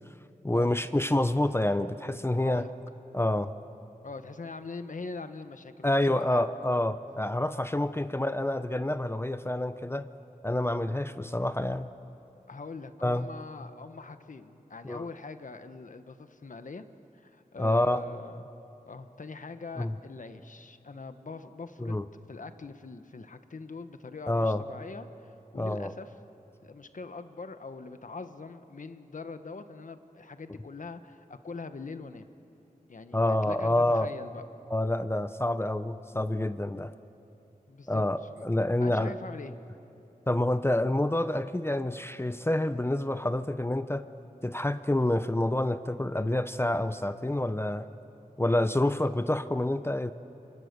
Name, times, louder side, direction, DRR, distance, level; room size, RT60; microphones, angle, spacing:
voice 1, 0.4-2.7 3.1-3.5 5.8-10.1 10.4-11.9 13.0-13.3 14.8-15.0 17.6-18.0 19.8-19.9 21.8-22.1 24.3-24.6 25.6-25.9 33.1-34.1 34.7-36.9 37.9-39.1 40.3-44.1 44.4-47.9 48.4-50.1, left 1 dB, 15° left, 12 dB, 0.7 m, -27 dB
voice 2, 2.4-2.7 4.0-6.8 12.5-16.8 17.1-18.5 18.8-21.9 22.3-26.1 26.6-32.3 32.9-34.4 37.7-38.0 38.3-38.4 38.8-39.5, left 4 dB, 60° left, 9 dB, 1.2 m, -43 dB
29.5 x 25.5 x 6.8 m, 2.9 s
wide cardioid pair, 95°, 15 cm